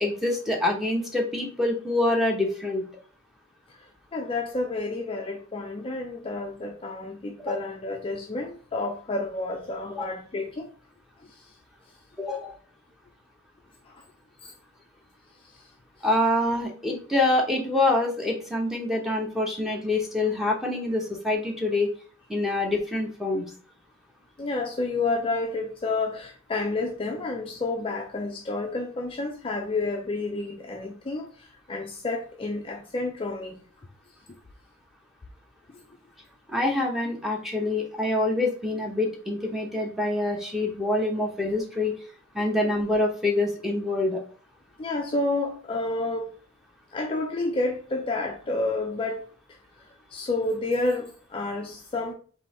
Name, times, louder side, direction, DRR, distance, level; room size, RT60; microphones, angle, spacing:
voice 1, 0.0-2.8 7.4-7.5 9.9-10.0 12.2-12.5 16.0-21.9 22.3-23.4 36.5-42.0 42.3-44.2, left 2 dB, ahead, 0.8 m, -26 dB
voice 2, 3.8-10.7 11.2-11.5 13.9-14.0 14.4-14.5 15.4-15.6 24.4-33.6 34.3-34.4 35.7-35.8 44.8-46.4 46.9-52.1, left 2 dB, 25° left, 0.4 m, -30 dB
3.8 x 2.7 x 4.1 m
head